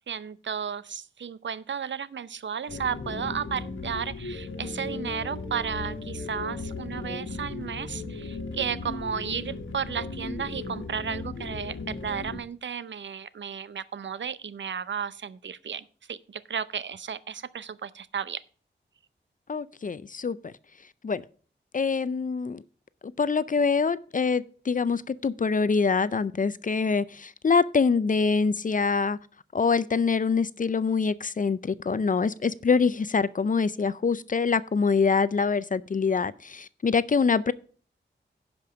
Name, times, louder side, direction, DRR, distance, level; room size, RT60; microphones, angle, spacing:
voice 1, 0.1-18.4, right 7 dB, 70° right, 0.6 m, -33 dB
sound 1, 2.7-12.4, left 3 dB, 80° left, 1.3 m, -36 dB
voice 2, 19.5-20.5 21.0-21.2 21.7-22.6 23.2-29.2 29.5-37.5, left 5 dB, 45° left, 0.5 m, -25 dB
10.5 x 5.2 x 6.1 m
wide cardioid pair, 60°, 20 cm